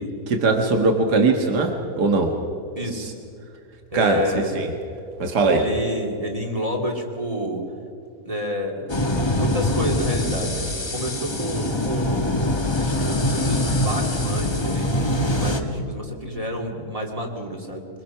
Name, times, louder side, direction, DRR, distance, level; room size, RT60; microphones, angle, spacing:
voice 1, 0.3-2.3 3.9-4.7 5.2-5.6, right 3 dB, 85° right, 4 dB, 2.1 m, -20 dB
voice 2, 2.8-3.1 3.9-4.7 5.5-7.6 8.2-12.3 12.8-17.9, equal, 20° right, 1 dB, 2.4 m, -29 dB
sound 1, 8.9-15.6, left 1 dB, 20° left, 1.3 m, -23 dB
24.0 x 21.5 x 5.8 m, 2.5 s
omnidirectional pair, 1.7 m